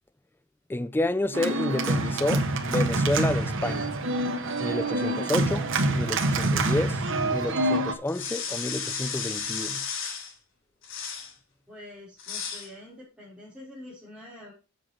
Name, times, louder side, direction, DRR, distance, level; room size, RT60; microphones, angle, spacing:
voice 1, 0.7-3.9 4.6-7.0 7.3-9.9, left 1 dB, 10° left, 0.4 m, -30 dB
Organ, 1.3-7.9, right 2 dB, 65° right, 1.3 m, -26 dB
sound 1, 8.1-10.3 10.8-11.3 12.2-12.7, left 6 dB, 65° left, 3.2 m, -33 dB
voice 2, 11.7-14.5, left 1 dB, 5° right, 4.7 m, -46 dB
8.0 x 7.3 x 5.0 m
head